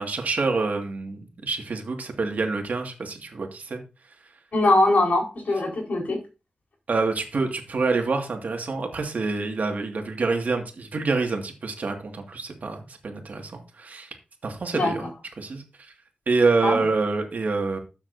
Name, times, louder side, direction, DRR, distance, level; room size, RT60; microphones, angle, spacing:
voice 1, 0.0-3.8 6.9-14.1 14.4-15.0 15.4-15.6 16.3-17.8, right 3 dB, 65° right, 3 dB, 2.0 m, -26 dB
voice 2, 4.5-6.2 14.7-14.9 16.6-16.8, left 2 dB, 65° left, -1 dB, 4.5 m, -21 dB
13.0 x 7.1 x 2.7 m, 0.31 s
wide cardioid pair, 85°, 3 cm